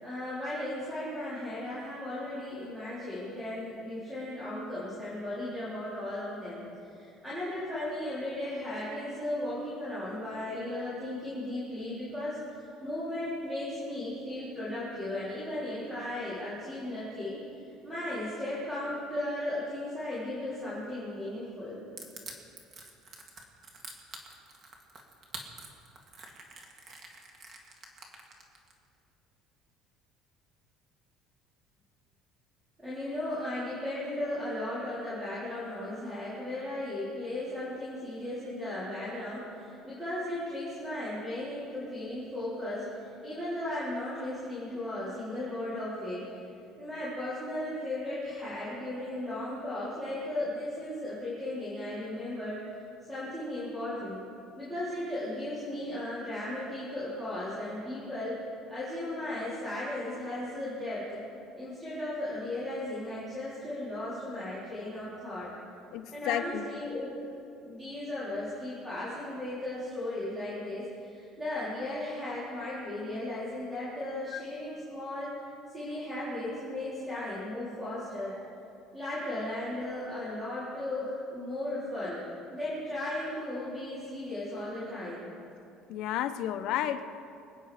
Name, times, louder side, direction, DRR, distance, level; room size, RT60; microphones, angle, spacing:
voice 1, 0.0-17.4 17.8-21.8 32.8-46.2 46.8-52.6 53.1-54.2 54.6-58.4 58.7-61.2 61.6-65.5 66.1-67.1 67.6-75.3 75.7-78.4 78.9-82.2 82.5-85.3, left 1 dB, 10° right, -11 dB, 3.8 m, -36 dB
Crushing, 22.0-28.7, right 3 dB, 35° right, 1.9 m, -46 dB
voice 2, 65.9-66.8 74.3-74.4 85.9-87.0, left 11 dB, 60° left, 8 dB, 0.9 m, -32 dB
26.5 x 9.1 x 5.0 m, 2.6 s
cardioid pair, 165°, 0 cm